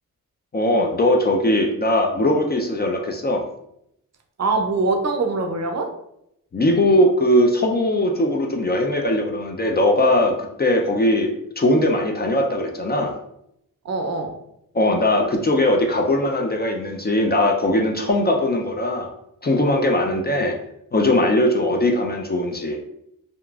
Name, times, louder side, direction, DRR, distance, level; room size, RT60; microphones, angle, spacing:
voice 1, 0.5-3.5 6.5-13.1 14.7-19.1 19.4-20.5 20.9-22.8, left 1 dB, 30° left, 2 dB, 0.4 m, -20 dB
voice 2, 4.4-5.9 13.8-14.3, right 3 dB, 50° right, 4 dB, 0.5 m, -23 dB
2.8 x 2.4 x 2.3 m, 0.77 s
cardioid pair, 55°, 35 cm